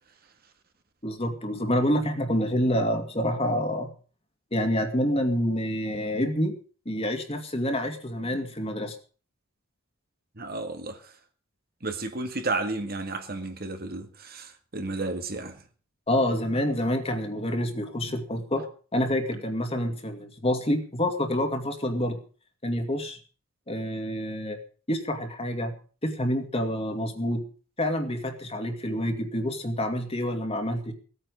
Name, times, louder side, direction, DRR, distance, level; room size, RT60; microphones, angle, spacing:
voice 1, 1.0-3.9 4.5-6.5 6.9-9.0 16.1-18.6 18.9-22.2 22.6-23.2 23.7-24.6 24.9-25.7 26.0-27.4 27.8-30.9, equal, 30° left, 2.4 m, -27 dB
voice 2, 10.4-11.0 11.8-15.6, right 2 dB, 45° right, 1.8 m, -32 dB
17.5 x 9.1 x 6.4 m
head